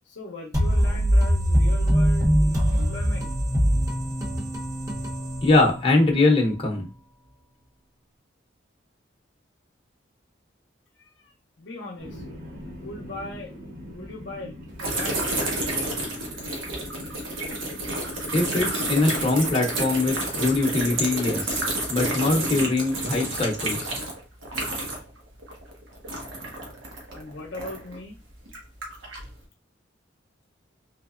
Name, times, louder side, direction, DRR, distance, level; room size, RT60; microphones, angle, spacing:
voice 1, 0.1-3.3 11.0-12.2 12.7-13.5 13.9-15.3 27.1-28.2, left 2 dB, 65° left, 2 dB, 0.6 m, -39 dB
sound 1, 0.5-6.2, equal, 15° right, 0.7 m, -22 dB
voice 2, 5.4-6.9 18.3-24.0, left 2 dB, 30° left, 0 dB, 0.7 m, -22 dB
sound 2, 12.0-19.3, left 1 dB, 50° right, 1.0 m, -42 dB
sound 3, 14.8-25.2 25.4-27.9 28.5-29.3, right 1 dB, 85° right, 1.1 m, -29 dB
3.5 x 3.1 x 2.4 m, 0.33 s
head